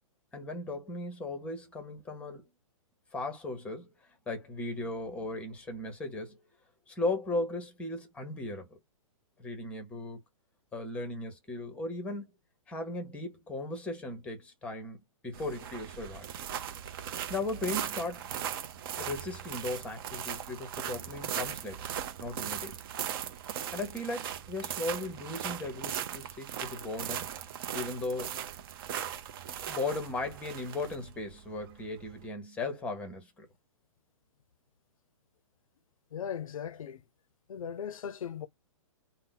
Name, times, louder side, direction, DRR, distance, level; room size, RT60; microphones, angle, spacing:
voice 1, 0.3-2.4 3.1-3.9 4.3-6.4 6.9-8.8 9.4-10.2 10.7-12.3 12.7-16.3 17.3-18.3 18.9-21.9 22.2-22.8 23.7-27.3 27.7-28.4 29.6-33.5, left 2 dB, 5° left, 0.8 m, -37 dB
sound 1, 15.3-32.2, right 9 dB, 40° right, 0.6 m, -39 dB
voice 2, 36.1-37.0 37.5-38.5, left 8 dB, 85° left, 0.5 m, -38 dB
2.7 x 2.1 x 3.8 m
hypercardioid pair, 150°, 17 cm